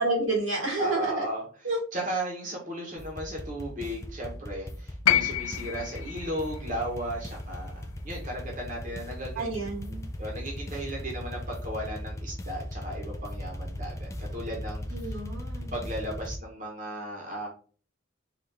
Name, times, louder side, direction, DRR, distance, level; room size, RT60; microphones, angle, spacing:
voice 1, 0.0-1.2 1.6-1.8 9.3-10.1 14.9-15.7, right 2 dB, 80° right, 0 dB, 1.6 m, -30 dB
voice 2, 0.8-1.4 1.9-9.7 10.2-15.2 15.7-17.5, right 1 dB, 40° right, -1 dB, 1.0 m, -35 dB
sound 1, 3.0-16.4, left 1 dB, 15° left, 0.3 m, -38 dB
sound 2, 5.1-9.2 10.4-10.5, left 12 dB, 90° left, 0.4 m, -30 dB
4.1 x 2.6 x 3.5 m, 0.40 s
head